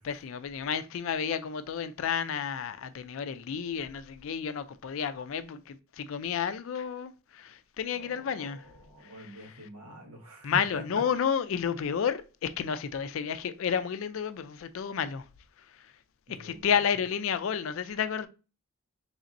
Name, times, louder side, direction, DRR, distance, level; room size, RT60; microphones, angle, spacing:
voice 1, 0.0-8.6 10.4-15.2 16.4-18.3, left 7 dB, 65° left, 0.3 m, -31 dB
voice 2, 7.9-11.0 16.3-16.7, right 1 dB, 85° right, 1.2 m, -45 dB
4.0 x 3.3 x 2.5 m
head